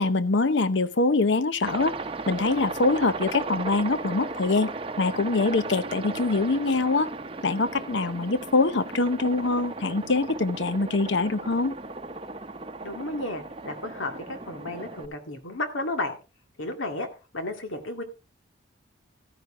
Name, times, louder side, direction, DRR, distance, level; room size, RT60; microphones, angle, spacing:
voice 1, 0.0-1.9 2.3-4.7 5.0-7.1 7.4-11.8, left 3 dB, 70° left, 0.8 m, -24 dB
Aircraft, 1.6-15.1, right 3 dB, 30° right, 0.7 m, -36 dB
voice 2, 12.8-16.2 16.6-17.1 17.3-18.0, left 2 dB, 85° left, 2.2 m, -33 dB
14.0 x 9.5 x 3.7 m
head